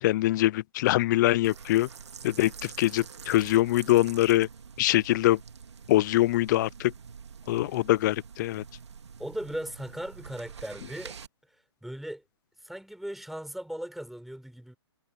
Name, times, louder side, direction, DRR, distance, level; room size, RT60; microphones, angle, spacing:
voice 1, 0.0-1.9 2.2-4.5 4.8-5.4 5.9-6.9 7.5-8.6, left 16 dB, 45° left, 0.9 m, -23 dB
sound 1, 1.4-11.3, right 6 dB, 80° right, 2.4 m, -46 dB
voice 2, 9.2-11.1 11.5-12.2 12.6-14.8, right 1 dB, ahead, 4.4 m, -38 dB
hypercardioid pair, 140°, 14 cm